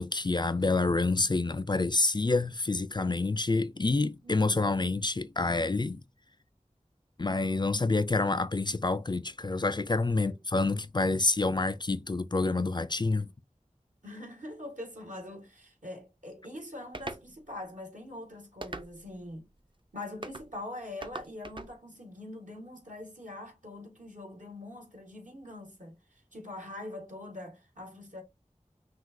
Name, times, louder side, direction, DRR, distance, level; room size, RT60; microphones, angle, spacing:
voice 1, 0.0-6.0 7.2-13.3, left 3 dB, 35° left, 0.4 m, -28 dB
voice 2, 4.2-4.8 10.2-10.4 14.0-19.5 19.9-28.2, left 1 dB, 75° right, 2.0 m, -43 dB
sound 1, 16.9-17.3 18.6-19.2 20.2-20.5 21.0-21.7, right 2 dB, 40° right, 0.6 m, -40 dB
5.8 x 2.6 x 2.6 m
wide cardioid pair, 40°, 13 cm